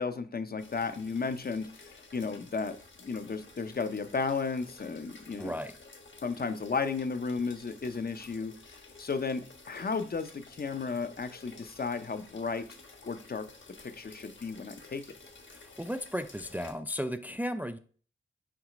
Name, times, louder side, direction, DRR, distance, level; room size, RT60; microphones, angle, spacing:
voice 1, 0.0-5.5 6.2-8.5 9.0-12.7 13.0-13.5 13.8-15.1, left 4 dB, 45° left, 0.6 m, -34 dB
sound 1, 0.6-16.7, left 3 dB, 65° left, 1.3 m, -53 dB
voice 2, 5.4-5.8 15.5-17.8, equal, 10° right, 0.3 m, -35 dB
6.0 x 3.2 x 5.0 m
wide cardioid pair, 80°, 21 cm